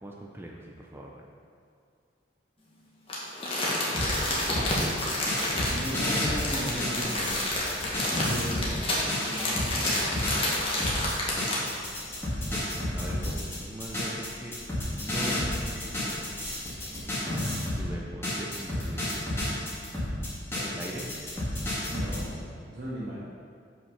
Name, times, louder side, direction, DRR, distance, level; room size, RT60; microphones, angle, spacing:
voice 1, 0.0-1.2 8.4-8.7 12.4-14.6 15.0-16.4 17.7-19.3 20.7-21.0, right 1 dB, 10° right, -1 dB, 0.6 m, -41 dB
Crumpling crinkling, 3.1-11.8 12.2-12.3, left 1 dB, 30° left, 1.7 m, -29 dB
voice 2, 3.8-4.2 5.7-7.6 8.1-9.9 10.7-11.0 16.9-17.2 20.5-21.0 21.9-22.4 22.7-23.2, equal, 55° right, -10 dB, 1.7 m, -38 dB
sound 1, 3.9-8.7 9.1-17.9 18.2-22.2, left 1 dB, 15° left, 2.3 m, -31 dB
7.9 x 5.7 x 5.8 m, 2.2 s
head